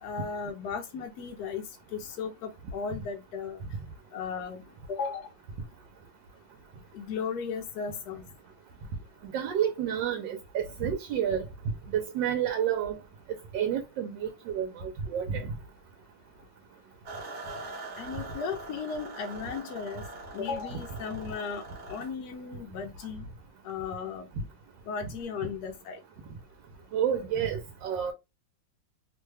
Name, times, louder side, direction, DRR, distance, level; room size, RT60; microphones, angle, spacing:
voice 1, 0.0-3.6 4.1-4.6 4.9-5.3 6.9-8.2 18.0-20.0 20.3-23.3 23.6-24.3 24.9-26.0, left 6 dB, 70° left, 0.9 m, -36 dB
voice 2, 9.3-11.4 11.9-13.0 13.5-15.5 26.9-28.1, right 9 dB, 80° right, 1.3 m, -29 dB
sound 1, 17.1-22.1, right 2 dB, 50° right, 1.0 m, -43 dB
3.2 x 2.1 x 3.2 m
omnidirectional pair, 2.0 m